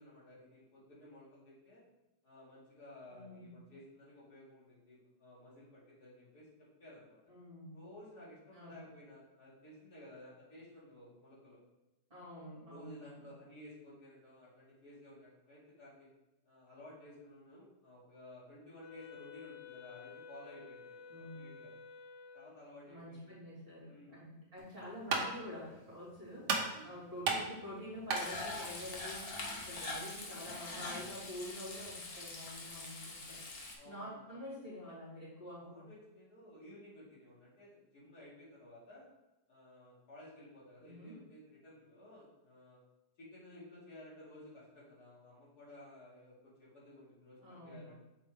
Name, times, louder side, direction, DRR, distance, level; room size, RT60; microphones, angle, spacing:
voice 1, 0.0-1.8 2.2-6.5 6.8-7.2 7.7-11.6 12.7-16.1 16.4-21.7 22.3-23.3 23.9-24.1 26.7-26.9 33.8-34.2 35.6-39.1 39.5-42.8 43.2-47.9, left 1 dB, 65° left, -8 dB, 2.8 m, -55 dB
voice 2, 3.1-3.5 7.3-7.8 8.5-8.7 12.1-13.3 21.1-21.5 22.9-33.4 33.8-35.9 40.8-41.2 47.4-47.9, left 1 dB, 30° right, -8 dB, 2.5 m, -48 dB
Wind instrument woodwind instrument, 18.8-22.6, left 7 dB, 90° left, 1.2 m, -52 dB
sound 1, 24.6-29.9, right 4 dB, 85° right, 1.5 m, -38 dB
Frying (food), 28.1-33.8, left 2 dB, 45° left, 1.0 m, -44 dB
6.9 x 4.2 x 3.5 m, 0.98 s
omnidirectional pair, 1.8 m